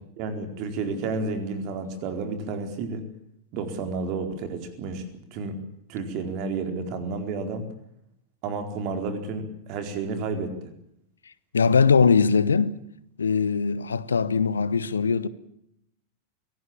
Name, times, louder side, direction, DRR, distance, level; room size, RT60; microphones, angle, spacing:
voice 1, 0.2-3.0 3.5-5.0 5.3-5.6 5.9-7.7 8.4-10.5, right 4 dB, 40° right, 4.3 m, -31 dB
voice 2, 11.5-12.8 13.2-15.3, left 5 dB, 70° left, 1.1 m, -21 dB
24.0 x 18.0 x 8.8 m
figure-of-eight pair, 90°, 0 cm